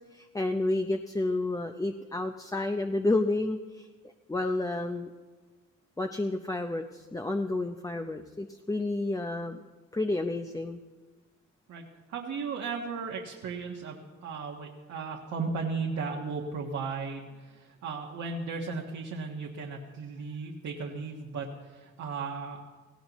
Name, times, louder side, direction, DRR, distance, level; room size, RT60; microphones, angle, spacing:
voice 1, 0.0-3.9 4.3-5.1 6.0-9.6 9.9-10.8, left 2 dB, 10° left, 6 dB, 0.6 m, -30 dB
voice 2, 11.7-22.6, right 4 dB, 65° right, -1 dB, 1.5 m, -36 dB
18.0 x 16.5 x 3.1 m, 1.4 s
cardioid pair, 90°, 30 cm